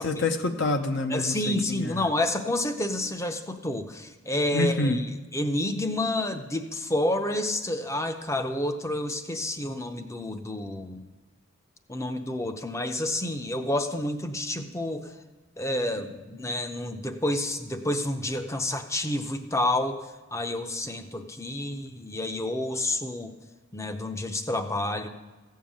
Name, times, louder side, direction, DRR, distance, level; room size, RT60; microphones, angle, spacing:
voice 1, 0.0-2.1 4.5-5.0, left 2 dB, 55° left, 6 dB, 0.7 m, -27 dB
voice 2, 1.1-5.1 5.3-11.0 11.9-15.1 15.6-23.3 23.7-25.1, left 1 dB, 15° left, 7 dB, 0.6 m, -29 dB
14.5 x 5.6 x 8.8 m, 1.2 s
head